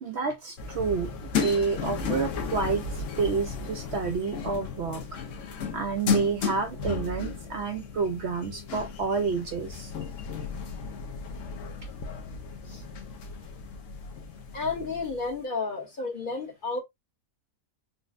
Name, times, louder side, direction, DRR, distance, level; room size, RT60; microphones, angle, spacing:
voice 1, 0.0-5.2 5.7-9.9, right 5 dB, 65° right, 0.7 m, -29 dB
sound 1, 0.6-15.4, left 5 dB, 65° left, 1.0 m, -34 dB
voice 2, 14.5-16.8, left 4 dB, 40° left, 1.0 m, -32 dB
4.1 x 2.1 x 2.5 m
omnidirectional pair, 1.5 m